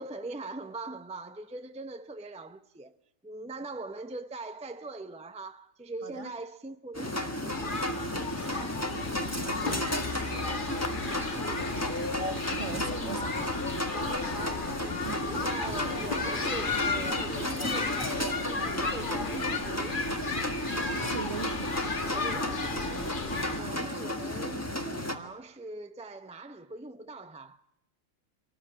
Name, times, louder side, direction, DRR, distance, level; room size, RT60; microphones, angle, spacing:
voice 1, 0.0-3.0 3.2-7.9 13.9-15.1 15.4-20.3 22.1-27.6, right 2 dB, 5° right, 0.6 m, -42 dB
sound 1, 6.9-25.2, left 1 dB, 10° left, 1.6 m, -33 dB
sound 2, 7.5-23.6, left 4 dB, 35° left, 1.5 m, -34 dB
voice 2, 8.5-11.0 12.5-13.7 15.0-15.2 21.0-21.8, right 7 dB, 55° right, 1.8 m, -42 dB
26.0 x 19.0 x 8.8 m
omnidirectional pair, 1.5 m